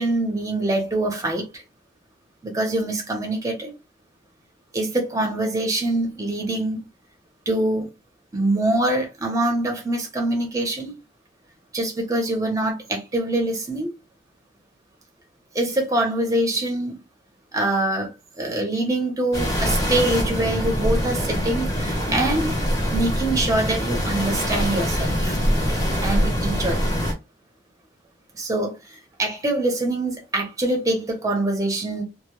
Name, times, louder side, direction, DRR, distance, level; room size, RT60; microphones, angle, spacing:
voice 1, 0.0-1.6 2.4-3.7 4.7-6.9 7.5-7.9 8.3-10.9 11.7-13.9 15.5-17.0 17.5-18.1 18.4-22.5 22.9-25.4 26.0-26.9 28.3-28.8 29.2-32.0, right 1 dB, 20° right, 0.7 m, -24 dB
sound 1, 19.3-27.1, equal, 20° left, 0.8 m, -24 dB
2.1 x 2.0 x 2.9 m
head